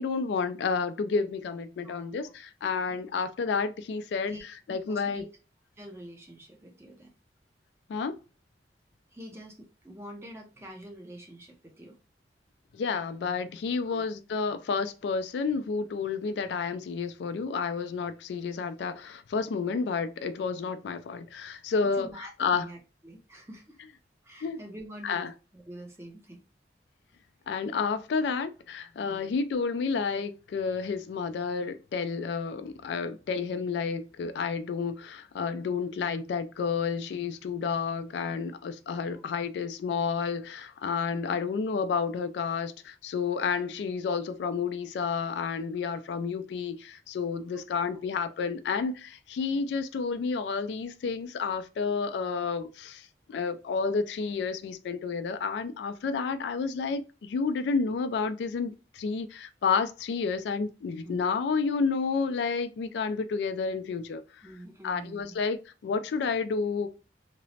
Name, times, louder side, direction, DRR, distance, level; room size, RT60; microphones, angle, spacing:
voice 1, 0.0-4.4 4.7-5.2 7.9-8.2 12.7-22.7 24.4-24.6 25.0-25.3 27.5-64.2 64.8-66.9, left 5 dB, 75° left, 0.3 m, -30 dB
voice 2, 1.8-2.3 2.9-3.0 4.2-4.4 4.9-5.3 5.8-7.1 9.1-12.0 13.9-14.1 21.9-23.8 24.2-26.4 29.0-29.4 39.1-39.3 39.6-39.7 47.5-47.9 61.0-61.2 64.4-65.3, right 1 dB, 15° right, 0.5 m, -46 dB
2.9 x 2.0 x 2.7 m
head